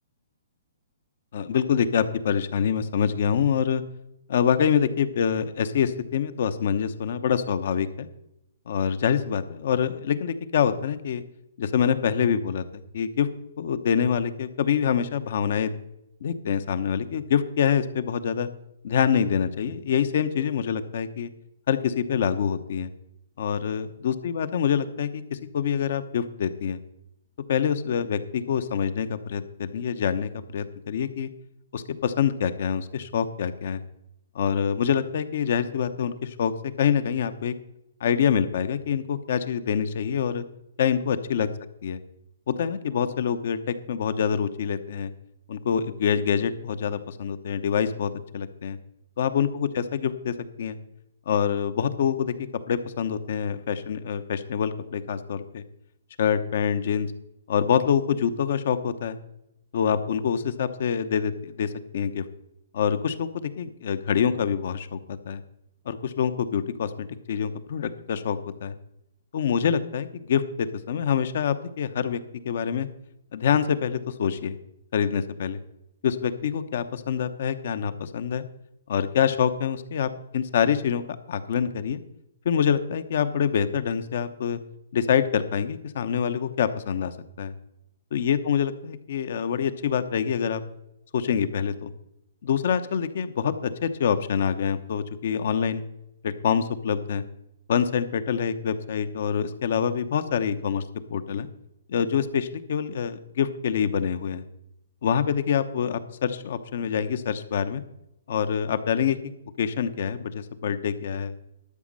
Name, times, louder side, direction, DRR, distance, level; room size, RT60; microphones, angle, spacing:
voice 1, 1.3-3.8 4.3-8.1 8.7-11.2 11.6-13.3 13.6-15.7 16.2-18.5 18.8-21.3 21.7-22.9 23.4-26.8 27.5-31.3 31.7-33.8 34.3-36.5 36.8-37.5 38.0-40.4 40.8-41.5 41.8-42.0 42.5-45.1 45.5-48.8 49.2-50.8 51.3-52.3 52.7-55.6 56.2-57.1 57.5-59.2 59.7-62.2 62.7-65.4 65.9-68.8 69.3-72.9 73.3-74.6 74.9-75.6 76.0-78.4 78.9-81.0 81.3-82.0 82.4-84.6 84.9-87.5 88.1-90.6 91.1-91.9 92.4-95.8 96.2-97.2 97.7-100.8 101.1-101.5 101.9-104.4 105.0-107.8 108.3-109.2 109.6-111.3, left 7 dB, 60° left, 12 dB, 0.9 m, -26 dB
12.0 x 5.2 x 7.6 m, 0.83 s
hypercardioid pair, 150°, 0 cm